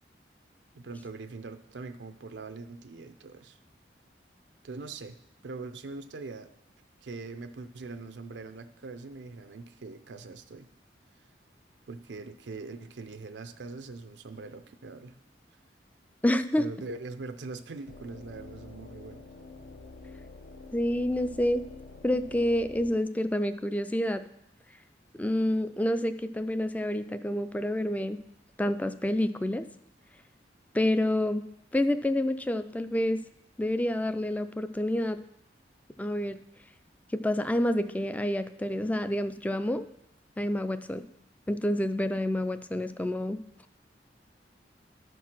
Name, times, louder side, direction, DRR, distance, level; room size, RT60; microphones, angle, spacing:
voice 1, 0.7-3.6 4.6-5.2 5.4-6.5 7.0-10.7 11.9-15.2 16.6-19.3, right 3 dB, 85° right, 9 dB, 0.5 m, -42 dB
voice 2, 16.2-16.7 20.7-21.6 22.0-24.3 25.2-28.2 28.6-29.6 30.7-31.5 31.7-33.2 33.6-35.2 36.0-36.4 37.1-39.8 40.4-41.0 41.5-43.4, left 1 dB, 10° left, 11 dB, 0.3 m, -28 dB
sound 1, 17.9-23.0, left 3 dB, 70° left, 0.7 m, -47 dB
12.0 x 4.6 x 5.8 m, 0.80 s
head